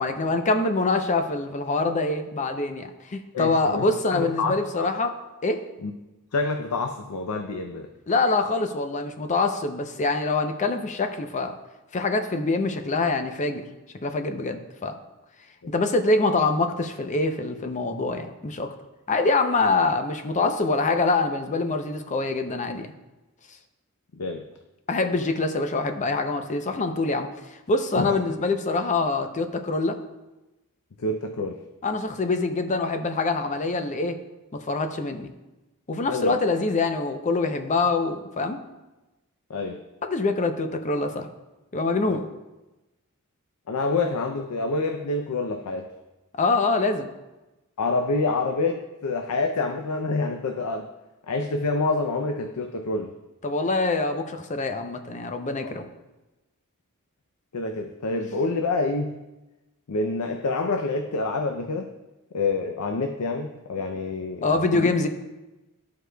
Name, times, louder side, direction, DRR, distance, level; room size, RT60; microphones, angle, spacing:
voice 1, 0.0-5.1 5.4-5.6 8.1-11.6 11.9-13.7 14.0-15.0 15.7-18.7 19.1-22.9 24.9-27.3 27.7-30.0 31.8-34.2 34.5-35.3 35.9-38.6 40.0-41.3 41.7-42.3 46.4-47.1 53.4-55.9 64.4-65.1, left 3 dB, 35° left, 7 dB, 0.5 m, -25 dB
voice 2, 3.3-4.9 5.8-5.9 6.3-7.9 15.6-15.7 24.1-24.5 27.9-28.4 31.0-31.6 36.1-36.4 39.5-39.8 42.1-42.2 43.7-45.9 47.8-50.9 51.3-53.1 55.6-55.7 57.5-59.2 59.9-61.9 62.3-64.9, left 3 dB, 90° left, 4 dB, 0.5 m, -27 dB
13.5 x 4.7 x 2.2 m, 1.1 s
head